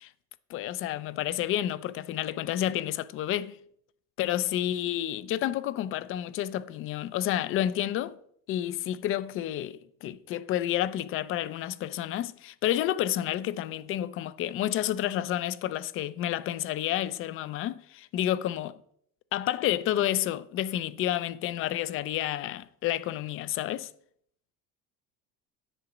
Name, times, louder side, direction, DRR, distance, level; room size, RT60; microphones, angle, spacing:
voice 1, 0.5-3.6 4.2-8.2 8.5-18.8 19.3-23.9, left 12 dB, 45° left, 0.5 m, -30 dB
9.9 x 4.9 x 7.2 m
cardioid pair, 165°, 31 cm